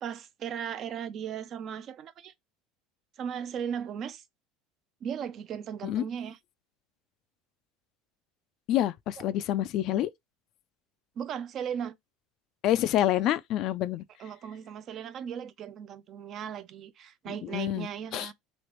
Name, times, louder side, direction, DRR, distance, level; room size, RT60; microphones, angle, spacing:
voice 1, 0.0-2.3 3.2-4.2 5.0-6.4 11.2-12.0 14.2-18.3, right 8 dB, 50° right, 0.5 m, -37 dB
voice 2, 8.7-10.1 12.6-14.0 17.3-18.3, left 12 dB, 55° left, 0.4 m, -27 dB
3.1 x 2.9 x 3.0 m
supercardioid pair, 90°, 0 cm